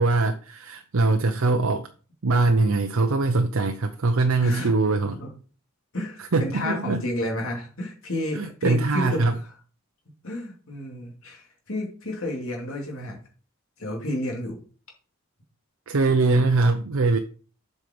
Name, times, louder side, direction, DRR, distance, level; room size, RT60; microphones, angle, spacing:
voice 1, 0.0-1.9 2.2-5.2 6.2-7.0 8.3-9.4 15.9-17.2, right 3 dB, 70° right, 6 dB, 0.7 m, -22 dB
voice 2, 4.4-4.7 5.2-5.3 5.9-9.2 10.2-13.2 13.8-14.6, left 1 dB, 70° left, 0 dB, 2.6 m, -31 dB
7.7 x 5.5 x 5.2 m, 0.39 s
head